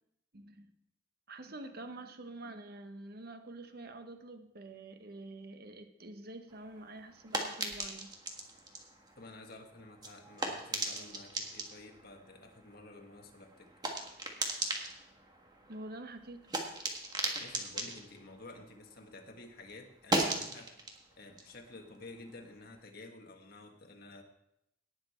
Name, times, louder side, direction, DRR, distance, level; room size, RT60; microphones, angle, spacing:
voice 1, 0.3-0.7 1.3-8.1 15.6-16.5, right 2 dB, 55° right, 1.0 m, -47 dB
sound 1, 6.5-19.3 19.6-22.8, right 2 dB, 20° right, 1.6 m, -39 dB
voice 2, 9.2-13.7 17.4-20.7 21.2-24.2, left 2 dB, 55° left, 1.7 m, -51 dB
18.0 x 6.7 x 4.4 m
head